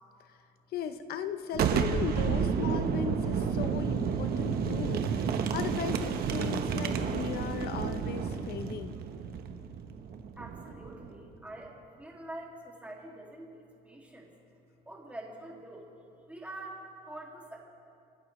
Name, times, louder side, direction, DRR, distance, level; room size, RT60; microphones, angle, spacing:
voice 1, 0.7-8.9, left 7 dB, 65° left, 9 dB, 0.9 m, -37 dB
Boom, 1.5-11.1, right 6 dB, 65° right, 1.2 m, -31 dB
voice 2, 10.4-14.3 14.9-15.9 16.2-17.6, right 1 dB, 10° right, -2 dB, 2.5 m, -45 dB
29.5 x 12.0 x 3.3 m, 2.5 s
cardioid pair, 110°, 17 cm